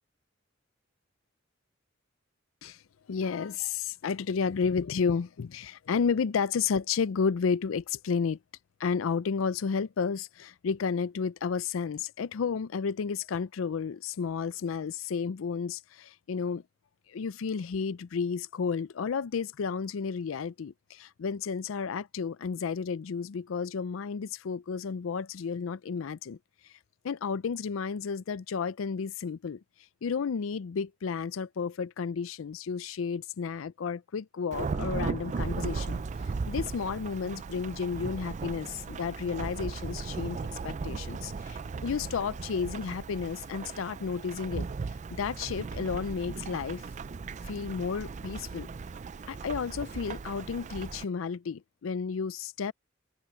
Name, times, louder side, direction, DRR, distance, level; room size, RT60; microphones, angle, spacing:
voice 1, 3.1-8.4 8.8-16.6 17.1-26.4 26.6-26.7 27.0-29.6 30.0-44.7 45.1-46.9 47.5-48.7 49.3-52.7, left 5 dB, 85° left, 0.4 m, -32 dB
Thunderstorm / Rain, 34.5-51.0, right 4 dB, 40° right, 0.4 m, -37 dB
head